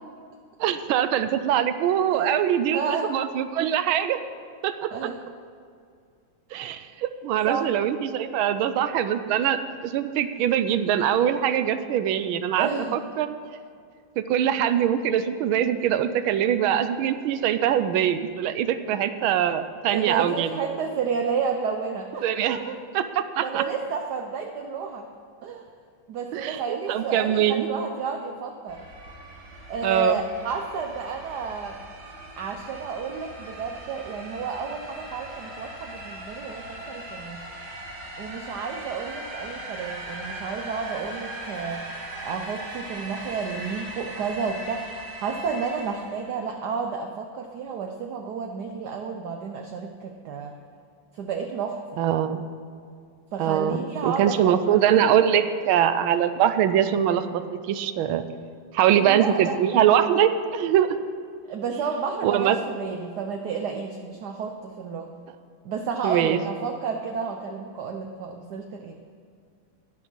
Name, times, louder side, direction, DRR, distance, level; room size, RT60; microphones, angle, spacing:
voice 1, 0.6-2.8 3.1-4.2 4.6-4.9 6.5-13.3 14.2-20.7 22.2-22.6 22.9-23.6 26.3-26.6 26.9-27.7 29.8-30.2 52.0-52.4 53.4-58.3 58.7-60.9 62.2-62.6 66.0-66.4, right 10 dB, 85° right, 11 dB, 1.5 m, -23 dB
voice 2, 2.1-2.4 2.7-3.1 4.9-5.2 7.5-7.7 12.6-13.0 19.8-22.8 23.4-25.1 25.4-25.7 26.1-28.8 29.7-31.8 32.4-37.4 38.2-50.5 51.1-51.8 53.3-55.4 58.9-59.6 61.5-65.1 65.6-69.0, right 5 dB, 65° right, 4 dB, 1.1 m, -31 dB
sound 1, 28.7-46.4, right 1 dB, 35° right, 2.2 m, -39 dB
12.0 x 10.5 x 5.4 m, 2.3 s
omnidirectional pair, 2.2 m